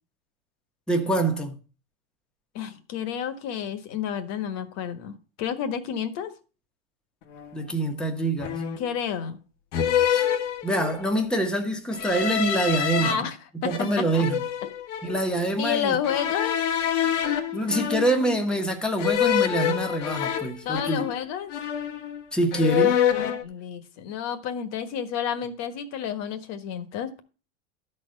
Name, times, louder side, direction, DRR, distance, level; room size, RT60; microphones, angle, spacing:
voice 1, 0.9-1.5 7.5-8.6 10.1-10.2 10.6-13.2 13.6-14.4 15.0-16.0 17.5-21.1 22.3-23.0, right 1 dB, ahead, 1.2 m, -25 dB
voice 2, 2.5-5.1 5.4-6.3 8.8-9.4 13.0-13.4 13.6-13.7 14.0-14.2 14.6-14.7 15.6-16.6 20.6-21.5 23.4-27.2, left 8 dB, 45° left, 1.5 m, -30 dB
sound 1, 7.3-7.5 8.4-8.9 9.7-11.1 11.9-13.1 13.7-15.2 16.0-18.4 19.0-21.2 21.5-22.2 22.5-23.4, left 9 dB, 75° left, 1.4 m, -26 dB
12.5 x 4.4 x 6.4 m
supercardioid pair, 125°, 36 cm